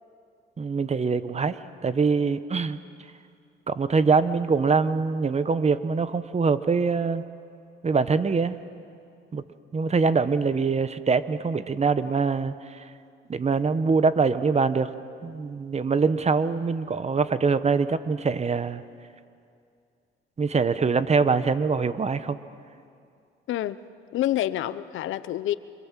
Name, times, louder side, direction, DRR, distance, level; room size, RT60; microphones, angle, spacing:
voice 1, 0.6-1.6 1.8-2.8 3.7-7.2 7.8-8.6 9.3-9.4 9.7-12.8 13.3-14.9 15.2-18.8 20.4-22.4, right 5 dB, 35° right, 13 dB, 1.1 m, -24 dB
voice 2, 23.5-23.8 24.1-25.5, left 13 dB, 80° left, 15 dB, 0.8 m, -27 dB
28.0 x 26.0 x 7.5 m, 2.4 s
cardioid pair, 90°, 20 cm